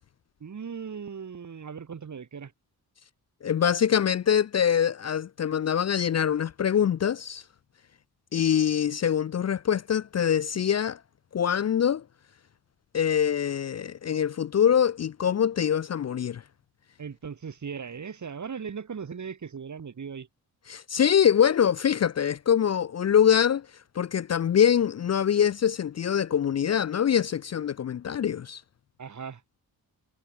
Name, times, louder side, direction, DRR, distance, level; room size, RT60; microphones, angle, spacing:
voice 1, 0.4-2.5 17.0-20.3 29.0-29.4, right 6 dB, 50° right, 2.6 m, -38 dB
voice 2, 3.4-7.4 8.3-11.0 11.3-12.0 12.9-16.4 20.7-23.7 24.0-28.6, left 8 dB, 45° left, 0.4 m, -24 dB
wide cardioid pair, 150°, 37 cm